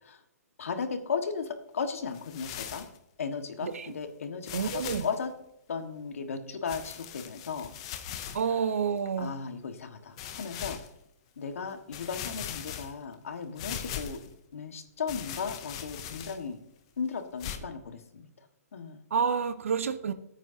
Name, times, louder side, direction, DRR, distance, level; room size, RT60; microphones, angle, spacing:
voice 1, 0.6-2.8 3.2-5.3 5.7-7.7 8.5-8.6 9.2-10.8 11.4-14.2 14.5-16.6 17.0-18.3 18.7-19.0, left 5 dB, 60° left, 6 dB, 1.5 m, -36 dB
sound 1, 2.1-3.0 3.7-3.8 4.4-5.2 6.7-8.5 9.1-9.2 10.2-10.9 11.5-11.6 11.9-13.1 13.6-14.3 15.1-16.5 17.4-17.6, left 10 dB, 20° left, 0.6 m, -40 dB
voice 2, 4.5-5.1 8.3-9.3 19.1-20.1, right 6 dB, 55° right, 12 dB, 0.8 m, -29 dB
16.0 x 9.1 x 2.8 m, 0.77 s
hypercardioid pair, 180°, 9 cm